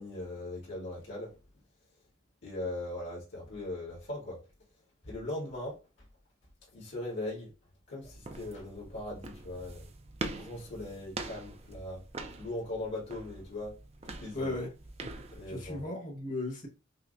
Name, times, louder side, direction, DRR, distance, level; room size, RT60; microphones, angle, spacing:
voice 1, 0.0-1.4 2.4-4.4 5.0-5.8 6.7-7.5 7.9-9.9 10.3-12.0 12.4-13.8 14.2-14.6 15.3-15.8, left 1 dB, 65° left, 1.7 m, -39 dB
sound 1, 8.0-15.8, right 3 dB, 30° right, 0.4 m, -44 dB
voice 2, 14.3-14.7 15.0-15.1 15.5-16.7, left 2 dB, 40° left, 1.2 m, -36 dB
5.6 x 2.1 x 2.5 m
head